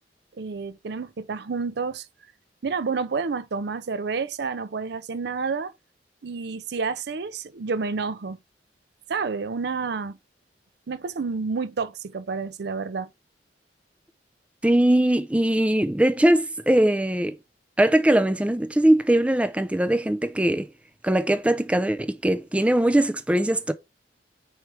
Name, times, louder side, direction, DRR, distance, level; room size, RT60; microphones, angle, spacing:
voice 1, 0.4-2.1 2.6-5.7 6.2-8.4 9.1-10.1 10.9-13.1, right 4 dB, 70° right, 0.5 m, -29 dB
voice 2, 14.6-17.4 17.8-20.7 21.0-23.7, right 1 dB, 5° right, 0.4 m, -21 dB
4.6 x 4.6 x 4.7 m
head